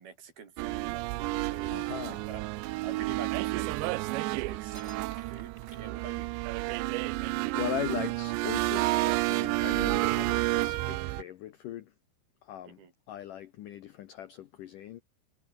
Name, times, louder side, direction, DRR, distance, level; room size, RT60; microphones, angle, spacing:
voice 1, 0.0-2.4 2.8-6.3 12.7-12.9, right 6 dB, 55° right, 5.6 m, -46 dB
sound 1, 0.6-11.2, right 20 dB, 85° right, 2.9 m, -30 dB
voice 2, 1.7-2.3 7.1-11.9 12.4-12.8 13.1-15.0, left 12 dB, 90° left, 1.8 m, -39 dB
sound 2, 3.7-4.3 4.7-6.6, right 2 dB, 15° right, 5.4 m, -54 dB
omnidirectional pair, 5.3 m